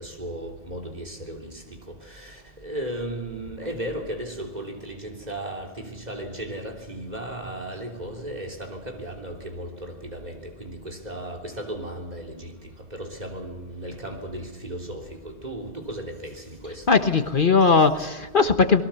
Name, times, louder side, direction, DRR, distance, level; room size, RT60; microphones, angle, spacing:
voice 1, 0.0-1.5 2.6-10.3 10.6-12.5 12.9-15.0 15.4-16.8, right 1 dB, 40° right, 3.4 m, -35 dB
voice 2, 16.9-18.8, left 4 dB, 50° left, 1.3 m, -19 dB
27.0 x 21.0 x 7.0 m
omnidirectional pair, 1.1 m